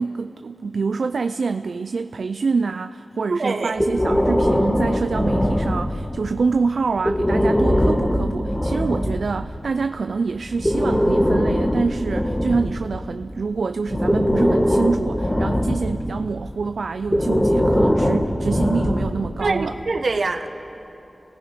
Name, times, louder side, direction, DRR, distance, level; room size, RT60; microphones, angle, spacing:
voice 1, 0.0-19.8, right 4 dB, 90° right, 9 dB, 0.4 m, -26 dB
voice 2, 3.3-3.8 19.4-20.5, right 3 dB, 75° right, 6 dB, 1.4 m, -24 dB
Breathing, 3.8-6.2 7.0-9.3 10.4-13.3 13.9-16.1 17.0-19.3, equal, 20° left, 1.9 m, -21 dB
30.0 x 18.5 x 5.1 m, 2.9 s
wide cardioid pair, 55°, 0 cm